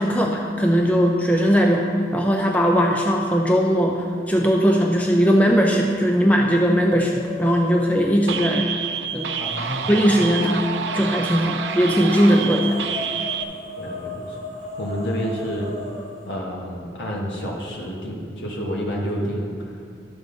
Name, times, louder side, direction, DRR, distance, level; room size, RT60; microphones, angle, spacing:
voice 1, 0.0-1.9 2.1-8.7 9.1-9.4 9.9-10.7 10.9-12.8, equal, 10° left, 0 dB, 0.5 m, -19 dB
sound 1, 5.6-6.1 6.5-8.3 9.1-16.2, left 2 dB, 40° left, 2.7 m, -37 dB
sound 2, 8.3-13.4, right 7 dB, 85° right, 0.6 m, -28 dB
voice 2, 9.4-9.9 13.8-14.4 14.8-15.7 16.3-19.7, equal, 80° left, -2 dB, 1.4 m, -29 dB
12.5 x 7.1 x 3.9 m, 2.3 s
head